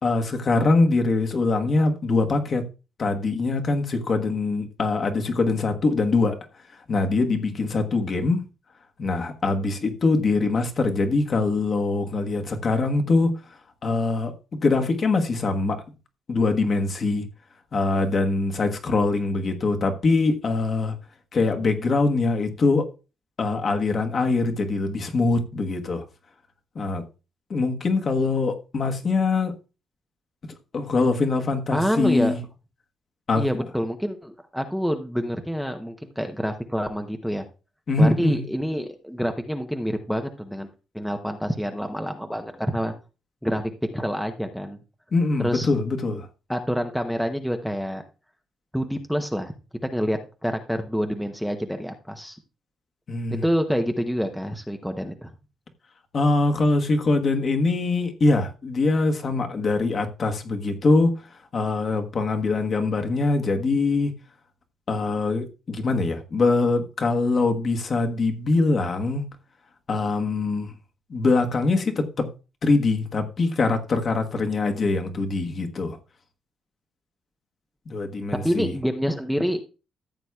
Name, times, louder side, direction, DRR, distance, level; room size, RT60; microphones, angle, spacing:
voice 1, 0.0-2.7 3.0-6.4 6.9-8.4 9.0-13.3 13.8-15.8 16.3-17.3 17.7-20.9 21.3-22.9 23.4-26.0 26.7-27.0 27.5-29.5 30.7-32.4 33.3-33.7 37.9-38.4 45.1-46.3 53.1-53.4 56.1-64.1 64.9-69.3 69.9-70.7 71.1-72.3 72.6-76.0 77.9-78.7, left 3 dB, 40° left, 1.3 m, -23 dB
voice 2, 31.7-32.3 33.4-37.5 38.0-40.7 40.9-42.9 43.4-44.8 45.4-45.7 46.5-48.0 48.7-49.5 49.8-52.4 53.4-55.3 78.4-79.6, equal, ahead, 0.7 m, -27 dB
14.0 x 8.0 x 2.3 m
cardioid pair, 145°, 0 cm